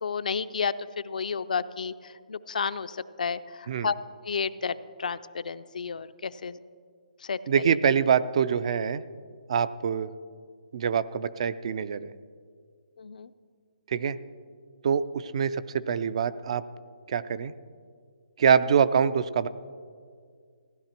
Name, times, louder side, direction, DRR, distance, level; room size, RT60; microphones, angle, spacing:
voice 1, 0.0-4.0 4.2-6.6 7.2-7.4 13.0-13.3, left 6 dB, 70° left, 13 dB, 0.5 m, -31 dB
voice 2, 7.5-9.0 9.5-10.1 10.7-12.1 13.9-14.2 14.8-16.6 17.1-17.5 18.4-19.5, right 7 dB, 45° right, 16 dB, 0.4 m, -25 dB
15.5 x 11.0 x 4.4 m, 2.1 s
hypercardioid pair, 165°, 4 cm